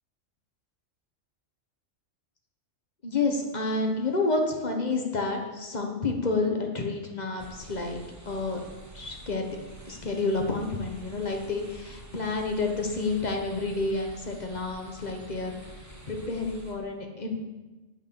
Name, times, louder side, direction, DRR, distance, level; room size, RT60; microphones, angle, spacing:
voice 1, 3.0-8.0 8.3-8.6 8.9-9.6 9.9-15.6 16.1-17.5, left 3 dB, 35° left, 2 dB, 1.3 m, -29 dB
sound 1, 7.4-16.7, right 2 dB, 15° right, 1.2 m, -48 dB
8.1 x 6.2 x 7.1 m, 1.2 s
omnidirectional pair, 1.3 m